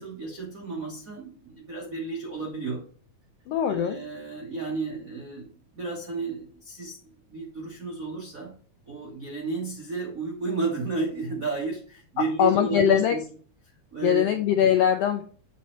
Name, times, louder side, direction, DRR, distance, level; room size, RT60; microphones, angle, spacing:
voice 1, 0.0-2.9 3.7-7.0 7.3-8.5 8.9-13.3 13.9-14.3, right 3 dB, 60° right, -1 dB, 0.9 m, -32 dB
voice 2, 3.5-4.0 12.4-13.2 14.0-15.2, left 9 dB, 80° left, 6 dB, 1.4 m, -21 dB
8.1 x 4.1 x 3.1 m, 0.42 s
omnidirectional pair, 3.4 m